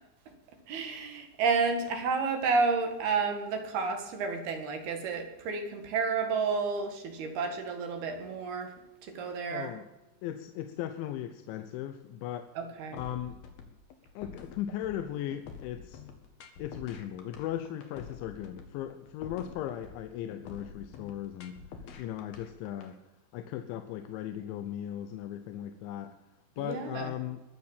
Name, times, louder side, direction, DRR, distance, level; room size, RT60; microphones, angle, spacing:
voice 1, 0.7-8.7 9.0-9.7 12.6-13.0 26.6-27.2, right 4 dB, 65° right, 5 dB, 3.6 m, -31 dB
voice 2, 9.4-9.9 10.2-12.5 12.9-13.4 14.2-16.0 16.6-23.0 23.3-26.1 26.6-27.4, left 11 dB, 90° left, 8 dB, 3.2 m, -37 dB
sound 1, 13.0-22.9, left 6 dB, 60° left, 3.3 m, -47 dB
21.5 x 7.7 x 7.3 m, 0.99 s
omnidirectional pair, 5.2 m